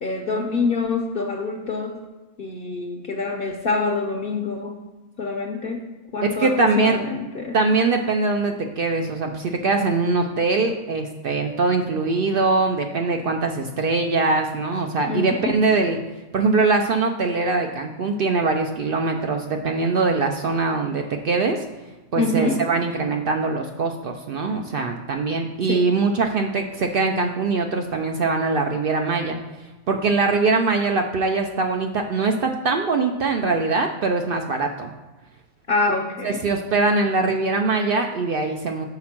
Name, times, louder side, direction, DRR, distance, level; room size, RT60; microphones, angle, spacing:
voice 1, 0.0-2.0 2.4-4.8 5.2-7.6 15.1-15.5 22.2-22.6 25.7-25.9 35.7-36.4, left 3 dB, 55° left, 3 dB, 0.7 m, -26 dB
voice 2, 6.4-7.0 7.5-16.0 16.3-21.6 22.1-29.4 29.9-34.9 36.2-38.8, right 3 dB, 65° right, 4 dB, 0.6 m, -22 dB
5.7 x 4.2 x 5.9 m, 1.2 s
omnidirectional pair, 1.3 m